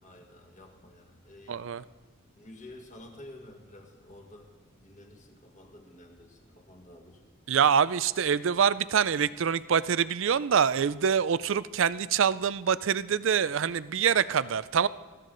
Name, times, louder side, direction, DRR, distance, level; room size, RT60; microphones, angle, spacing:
voice 1, 0.0-1.7 2.3-7.2, left 1 dB, 35° left, 1 dB, 2.0 m, -51 dB
voice 2, 1.5-1.8 7.5-14.9, right 7 dB, 60° right, 17 dB, 0.4 m, -25 dB
21.0 x 14.0 x 3.9 m, 1.3 s
head